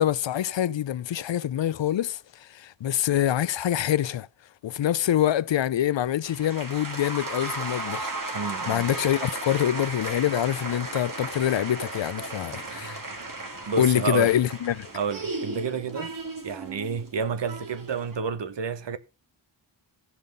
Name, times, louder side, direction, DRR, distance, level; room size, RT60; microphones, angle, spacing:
voice 1, 0.0-4.3 4.6-8.1 8.7-13.0 13.8-14.9, left 11 dB, 75° left, 0.6 m, -25 dB
sound 1, 6.2-18.2, right 2 dB, 45° right, 2.4 m, -35 dB
voice 2, 8.3-8.9 13.7-14.3 14.9-16.1 16.4-19.0, right 5 dB, 70° right, 1.1 m, -30 dB
16.0 x 5.7 x 5.3 m
wide cardioid pair, 125°, 44 cm